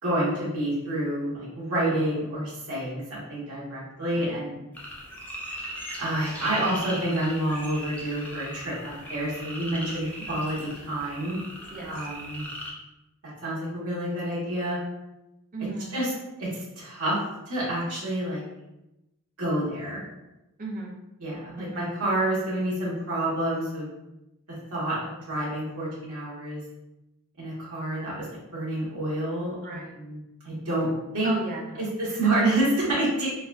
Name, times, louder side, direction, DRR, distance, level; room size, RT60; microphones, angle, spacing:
voice 1, 0.0-4.6 6.0-11.4 11.8-12.4 13.2-14.8 15.9-16.1 16.4-17.2 17.5-18.4 19.4-20.0 21.2-23.9 24.5-26.6 27.4-30.9 31.1-31.3 31.8-33.3, right 1 dB, 90° right, -7 dB, 1.5 m, -28 dB
voice 2, 4.2-4.5 10.2-10.4 11.7-11.9 15.5-16.0 20.6-20.9 21.6-21.9 29.5-29.9 31.2-31.9, right 2 dB, 40° right, -1 dB, 0.5 m, -36 dB
sound 1, 4.7-12.7, equal, 5° left, 0.5 m, -39 dB
4.0 x 2.4 x 2.5 m, 0.94 s
head